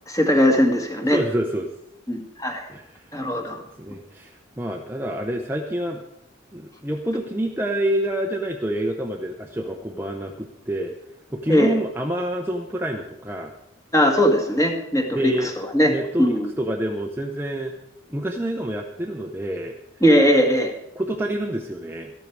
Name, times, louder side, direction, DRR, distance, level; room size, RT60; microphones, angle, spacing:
voice 1, 0.1-1.2 2.1-2.7 3.1-3.6 11.5-11.7 13.9-15.9 16.2-16.5 20.0-20.7, equal, 15° left, 3 dB, 1.6 m, -19 dB
voice 2, 1.1-1.7 2.7-3.2 3.5-6.0 6.5-10.9 11.3-13.5 15.1-15.5 15.8-17.7 18.1-19.7 20.9-22.1, right 1 dB, 10° right, 2 dB, 0.7 m, -27 dB
13.5 x 12.5 x 4.7 m, 0.79 s
head